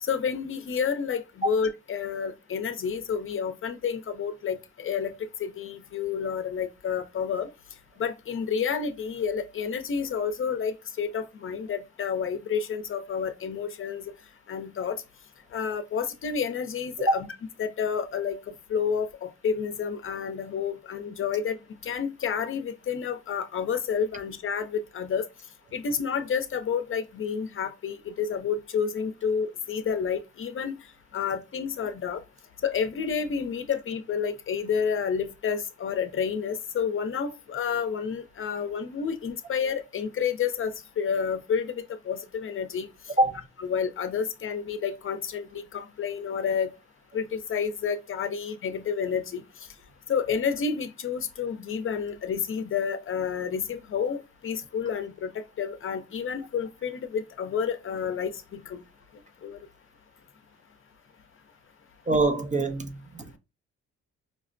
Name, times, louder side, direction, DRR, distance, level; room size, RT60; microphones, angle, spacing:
voice 1, 0.0-5.1 5.4-7.5 8.0-14.1 14.5-15.0 15.5-17.3 17.6-21.6 21.8-25.3 25.7-30.8 31.1-32.2 32.6-42.9 43.7-46.7 47.1-49.4 50.1-58.8 59.4-59.6, left 6 dB, 45° left, 0.6 m, -30 dB
voice 2, 62.1-63.3, right 2 dB, 25° right, 0.5 m, -24 dB
5.0 x 2.0 x 2.5 m
cardioid pair, 90°, 30 cm